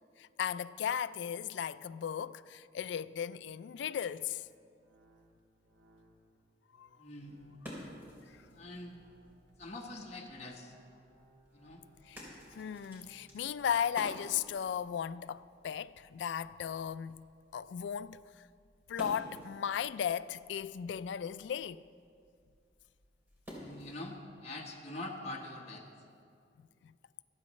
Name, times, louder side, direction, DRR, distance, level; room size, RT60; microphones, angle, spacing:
voice 1, 0.2-4.4 6.8-6.9 12.1-12.2 12.5-17.3 17.5-18.2 18.9-21.8, left 8 dB, 75° left, 0.3 m, -36 dB
sound 1, 3.4-13.8, right 1 dB, 75° right, 1.6 m, -65 dB
voice 2, 7.0-7.4 8.5-9.0 9.6-10.7 11.5-11.8 23.6-25.8, left 2 dB, 35° left, 1.3 m, -44 dB
sound 2, 7.0-24.2, equal, 10° right, 3.3 m, -54 dB
25.5 x 8.7 x 3.1 m
head